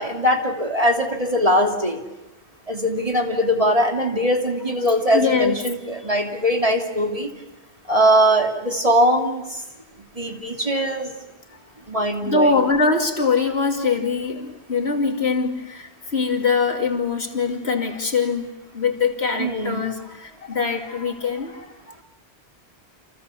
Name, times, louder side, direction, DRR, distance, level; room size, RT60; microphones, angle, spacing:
voice 1, 0.0-2.0 2.7-7.3 7.9-9.4 10.2-11.1 11.9-12.5 19.4-19.8, equal, 30° right, 2 dB, 2.8 m, -21 dB
voice 2, 5.1-5.6 11.5-11.6 12.2-22.0, left 4 dB, 70° left, 3 dB, 2.9 m, -23 dB
29.0 x 28.5 x 7.0 m, 0.99 s
omnidirectional pair, 1.1 m